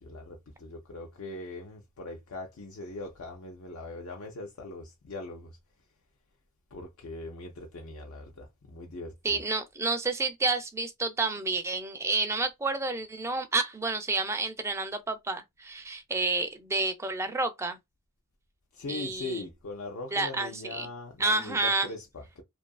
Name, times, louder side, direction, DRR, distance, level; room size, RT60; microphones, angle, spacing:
voice 1, 0.0-5.6 6.7-9.4 18.7-22.4, left 2 dB, 75° left, 0.5 m, -41 dB
voice 2, 9.2-17.8 18.9-19.5 20.1-20.9 21.2-21.9, right 3 dB, 15° right, 0.4 m, -30 dB
2.6 x 2.4 x 2.2 m
head